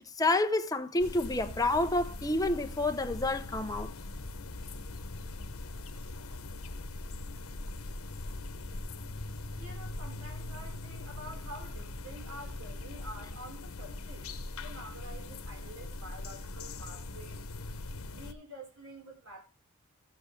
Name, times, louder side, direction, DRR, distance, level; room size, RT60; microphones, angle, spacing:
voice 1, 0.2-3.9, left 2 dB, 15° left, 0.8 m, -29 dB
sound 1, 1.0-18.3, left 2 dB, 85° left, 1.1 m, -41 dB
voice 2, 9.6-14.3 14.5-17.4 18.1-19.4, right 1 dB, 70° right, 4.6 m, -48 dB
14.0 x 7.9 x 3.3 m
head